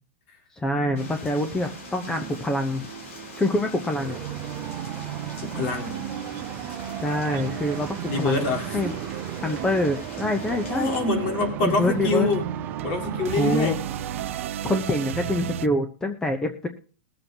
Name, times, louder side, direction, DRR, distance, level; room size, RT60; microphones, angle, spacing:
voice 1, 0.5-2.9 3.4-4.2 7.0-8.9 9.4-10.9 11.6-12.3 13.4-13.8 14.6-16.7, left 1 dB, 10° left, 6 dB, 0.8 m, -26 dB
sound 1, 0.7-15.7, right 10 dB, 75° right, 0.7 m, -36 dB
sound 2, 0.9-11.0, left 2 dB, 80° left, 4.6 m, -43 dB
sound 3, 4.0-14.5, right 12 dB, 25° right, 0.6 m, -37 dB
voice 2, 5.5-6.0 8.1-8.8 10.5-12.4 12.8-13.7, left 3 dB, 45° left, 0 dB, 4.1 m, -25 dB
21.0 x 7.7 x 2.9 m, 0.40 s
supercardioid pair, 150°, 7 cm